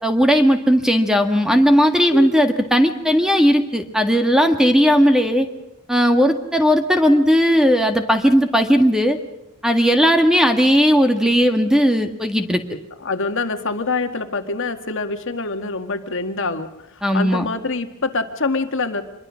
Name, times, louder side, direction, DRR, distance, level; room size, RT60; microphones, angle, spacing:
voice 1, 0.0-5.5 5.9-9.2 9.6-12.6 17.0-17.5, equal, 5° right, 6 dB, 1.7 m, -16 dB
voice 2, 13.0-16.7 16.9-19.0, left 3 dB, 60° left, 7 dB, 1.8 m, -25 dB
26.0 x 22.5 x 6.4 m, 0.88 s
head